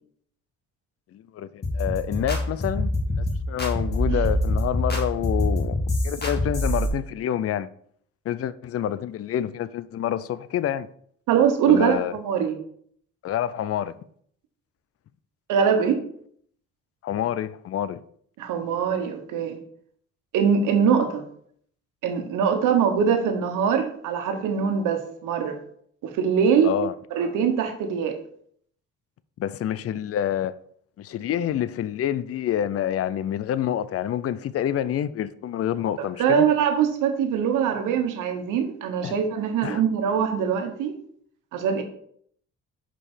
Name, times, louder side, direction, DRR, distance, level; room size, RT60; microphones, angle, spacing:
voice 1, 1.1-2.9 3.2-5.8 6.0-7.7 8.3-10.9 11.7-12.2 13.2-14.0 17.0-18.0 26.6-26.9 29.4-30.5 31.0-36.5 39.0-39.1 39.6-39.8, left 10 dB, 50° left, 0.5 m, -27 dB
sound 1, 1.6-6.9, left 1 dB, 35° left, 2.2 m, -25 dB
voice 2, 11.3-12.6 15.5-16.0 18.4-19.6 20.3-21.2 22.0-25.6 26.0-26.7 27.1-28.2 36.2-40.9 41.5-41.8, right 7 dB, 90° right, 1.3 m, -22 dB
5.5 x 5.2 x 6.3 m
cardioid pair, 90°, 30 cm